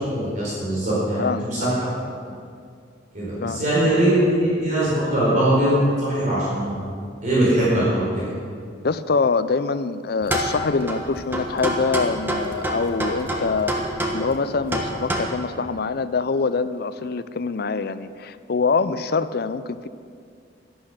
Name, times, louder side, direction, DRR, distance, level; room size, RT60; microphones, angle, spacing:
voice 1, 0.1-1.7 3.1-6.7 7.2-8.3, right 1 dB, 45° right, -7 dB, 4.3 m, -21 dB
voice 2, 1.2-1.7 3.4-3.9 8.8-13.8 14.1-19.9, left 4 dB, 55° left, 13 dB, 0.5 m, -24 dB
sound 1, 10.2-15.2, right 1 dB, 10° right, 1.4 m, -26 dB
12.0 x 11.5 x 6.6 m, 2.3 s
head